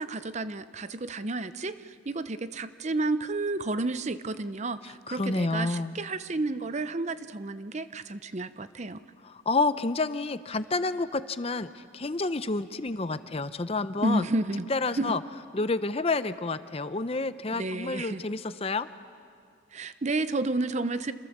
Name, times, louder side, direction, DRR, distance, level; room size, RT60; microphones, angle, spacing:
voice 1, 0.0-9.0 14.0-14.7 14.9-15.2 17.5-18.2 19.7-21.1, right 2 dB, 35° right, 12 dB, 0.6 m, -31 dB
voice 2, 4.8-6.0 9.2-14.2 14.7-15.2 15.5-18.9, left 3 dB, 30° left, 12 dB, 0.6 m, -29 dB
27.0 x 26.5 x 7.3 m, 2.3 s
head